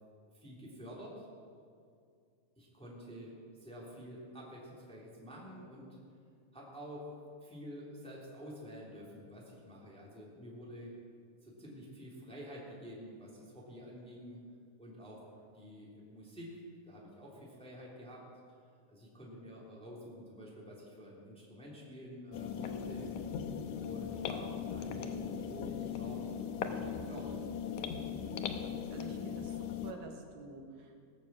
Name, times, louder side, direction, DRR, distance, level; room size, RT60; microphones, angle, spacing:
voice 1, 0.3-1.3 2.6-5.9 6.5-10.9 11.4-14.4 14.8-15.3 15.5-18.2 18.9-23.1 23.8-27.5, equal, ahead, -4 dB, 2.2 m, -49 dB
sound 1, 22.3-29.9, left 7 dB, 75° left, 1.8 m, -39 dB
voice 2, 28.8-31.2, right 3 dB, 70° right, 2 dB, 3.1 m, -49 dB
18.0 x 7.1 x 7.4 m, 2.3 s
omnidirectional pair, 4.2 m